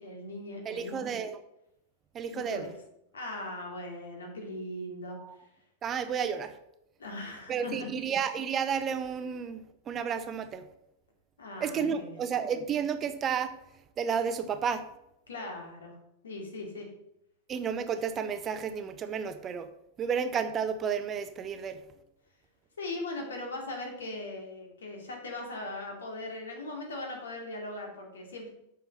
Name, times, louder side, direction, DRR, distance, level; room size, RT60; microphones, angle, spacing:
voice 1, 0.0-1.1 2.3-2.7 3.1-5.2 7.0-7.9 11.4-12.2 15.3-16.0 16.2-16.9 22.8-28.5, left 2 dB, 70° left, 1 dB, 2.5 m, -39 dB
voice 2, 0.6-1.4 2.1-2.6 5.8-6.5 7.5-9.6 9.9-10.6 11.6-13.6 14.0-14.8 17.5-19.7 20.0-21.8, right 7 dB, 25° right, 10 dB, 0.7 m, -31 dB
8.0 x 5.8 x 5.3 m, 0.81 s
figure-of-eight pair, 90°, 0 cm